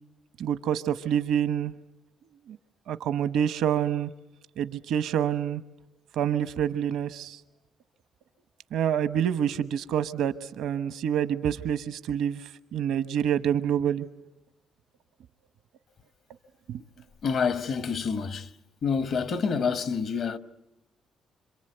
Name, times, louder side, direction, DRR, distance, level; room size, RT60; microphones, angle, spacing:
voice 1, 0.4-1.7 2.5-2.6 2.9-4.1 4.6-5.6 6.2-7.4 8.7-14.0 16.7-16.8, right 9 dB, 80° right, 1.0 m, -27 dB
voice 2, 17.2-18.5 18.8-20.4, left 5 dB, 65° left, 1.3 m, -27 dB
27.0 x 26.5 x 8.0 m
cardioid pair, 90°, 0 cm